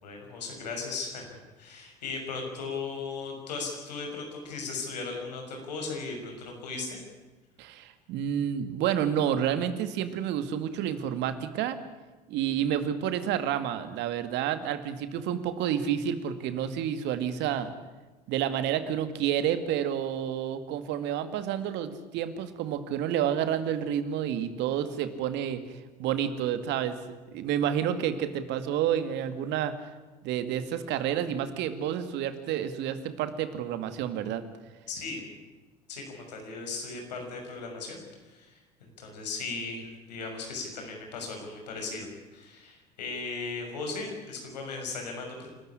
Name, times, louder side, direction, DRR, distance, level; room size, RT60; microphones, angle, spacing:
voice 1, 0.0-7.0 34.9-35.2 35.9-45.5, left 4 dB, 80° left, 2 dB, 6.2 m, -37 dB
voice 2, 7.6-11.8 12.3-17.7 18.3-27.0 27.3-29.8 30.2-34.4, right 9 dB, 60° right, 10 dB, 2.2 m, -29 dB
28.0 x 13.5 x 9.9 m, 1.2 s
hypercardioid pair, 70°, 21 cm